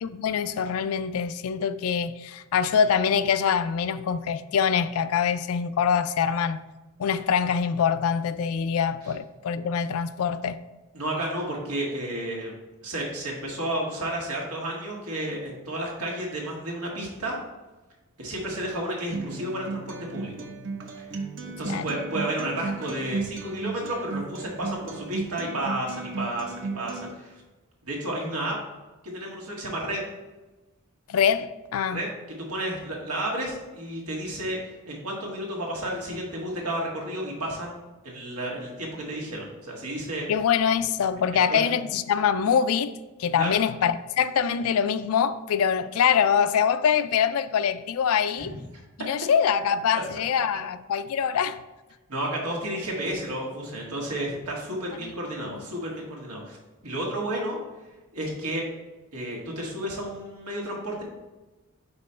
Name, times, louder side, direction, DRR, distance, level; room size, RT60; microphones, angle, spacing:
voice 1, 0.0-6.6 7.0-10.6 21.6-21.9 31.1-32.0 40.3-42.9 43.2-48.5 49.0-51.6 55.0-55.1 55.5-55.6, left 7 dB, 75° left, 0.3 m, -24 dB
voice 2, 10.9-12.6 12.8-17.4 18.2-20.5 21.4-27.4 27.8-28.6 29.0-30.1 31.9-34.6 34.9-37.8 38.0-40.3 41.5-41.8 43.4-43.5 48.4-48.5 49.9-50.0 52.1-56.6 56.8-57.6 58.1-58.6 59.1-61.0, right 1 dB, 90° right, 1.7 m, -32 dB
Acoustic guitar, 19.1-27.1, right 4 dB, 55° right, 0.7 m, -35 dB
5.3 x 4.1 x 4.3 m
head